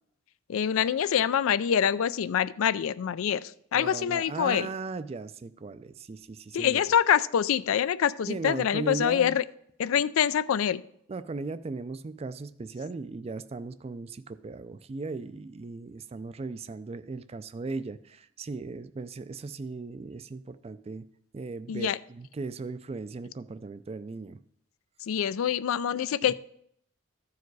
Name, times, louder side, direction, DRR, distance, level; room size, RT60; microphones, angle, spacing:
voice 1, 0.5-4.7 6.5-9.4 9.8-10.8 21.7-22.0 25.1-26.3, left 8 dB, 80° left, 16 dB, 0.4 m, -25 dB
voice 2, 3.7-6.8 8.3-9.3 11.1-21.1 21.3-24.4 26.3-26.4, right 3 dB, 30° right, 13 dB, 0.3 m, -37 dB
14.0 x 4.7 x 4.7 m, 0.71 s
head